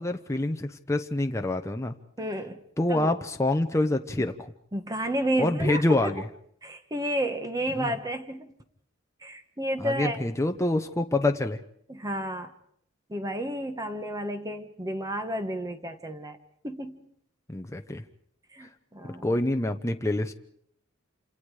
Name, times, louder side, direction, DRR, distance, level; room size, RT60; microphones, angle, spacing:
voice 1, 0.0-1.9 2.8-4.5 5.4-6.2 7.7-8.0 9.8-11.6 17.5-18.0 19.2-20.3, left 2 dB, 15° left, 5 dB, 0.9 m, -26 dB
voice 2, 2.2-2.6 2.9-3.1 4.7-6.1 6.6-8.5 9.2-10.2 11.9-12.5 13.1-16.4 16.6-17.0 18.5-19.3, right 1 dB, 20° right, 8 dB, 1.4 m, -31 dB
28.0 x 27.5 x 4.9 m, 0.67 s
head